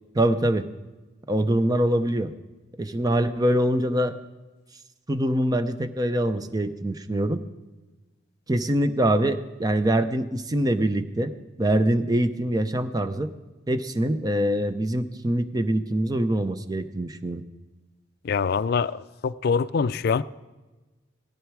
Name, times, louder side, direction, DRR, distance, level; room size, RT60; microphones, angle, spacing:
voice 1, 0.1-0.7 1.3-2.3 2.8-4.1 5.1-7.4 8.5-13.3 13.7-17.4, right 1 dB, 20° right, 0.6 m, -24 dB
voice 2, 18.2-20.2, left 5 dB, 55° left, 0.4 m, -24 dB
17.0 x 14.0 x 4.7 m
head